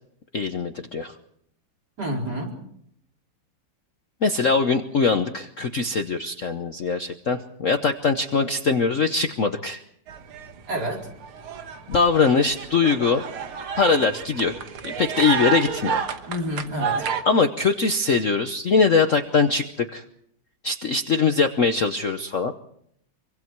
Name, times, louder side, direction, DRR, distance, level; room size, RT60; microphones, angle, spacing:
voice 1, 0.3-1.1 4.2-9.8 11.9-13.2 13.8-14.6 14.8-16.0 17.3-20.0 20.6-22.5, left 4 dB, 50° left, 7 dB, 1.0 m, -22 dB
voice 2, 2.0-2.6 10.7-11.1 16.3-17.1, equal, 45° right, -1 dB, 5.0 m, -29 dB
sound 1, 10.1-10.8 11.1-17.2, right 6 dB, 80° right, 2.2 m, -30 dB
25.5 x 24.5 x 4.7 m, 0.70 s
omnidirectional pair, 2.3 m